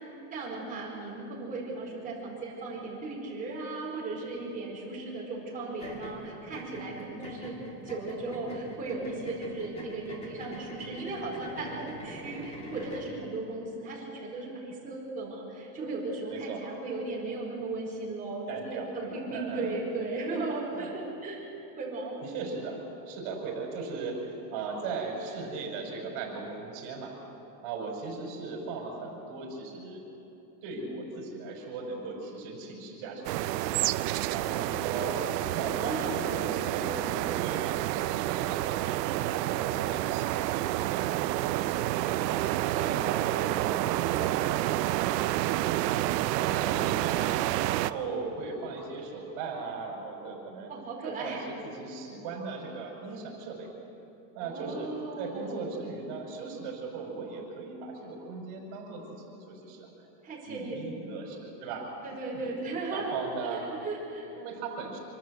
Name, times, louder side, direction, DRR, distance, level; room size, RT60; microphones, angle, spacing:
voice 1, 0.3-7.6 7.8-22.2 35.1-35.2 35.7-36.1 42.7-42.9 50.7-51.4 54.4-55.7 60.2-60.8 62.0-64.3, right 3 dB, 15° right, -4 dB, 4.9 m, -36 dB
sound 1, 5.8-13.1, equal, 10° left, 2.0 m, -44 dB
voice 2, 16.3-16.6 18.5-19.8 20.8-20.9 22.2-22.8 23.1-27.2 27.6-30.0 30.6-47.3 47.7-50.7 51.0-53.7 54.3-59.9 60.4-61.9 62.3-62.5 62.9-63.7 64.4-65.0, right 4 dB, 45° right, 0 dB, 5.4 m, -38 dB
sound 2, 33.2-47.9, right 15 dB, 80° right, 0.7 m, -29 dB
26.0 x 13.0 x 7.9 m, 2.9 s
supercardioid pair, 170°, 49 cm